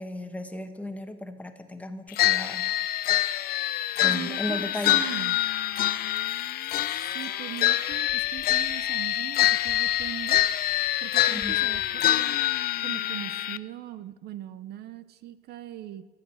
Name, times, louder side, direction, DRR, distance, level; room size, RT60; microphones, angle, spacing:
voice 1, 0.0-2.7 4.0-5.1 11.3-11.7, left 1 dB, 10° left, 7 dB, 1.2 m, -35 dB
sound 1, 2.2-13.6, left 13 dB, 65° left, 0.5 m, -26 dB
voice 2, 4.0-5.4 6.9-10.4 11.0-12.4 12.8-16.1, right 13 dB, 70° right, 13 dB, 0.7 m, -40 dB
sound 2, 5.1-9.1 9.4-11.9, equal, 10° right, 3.9 m, -52 dB
15.0 x 11.5 x 6.3 m, 1.3 s
cardioid pair, 110°, 17 cm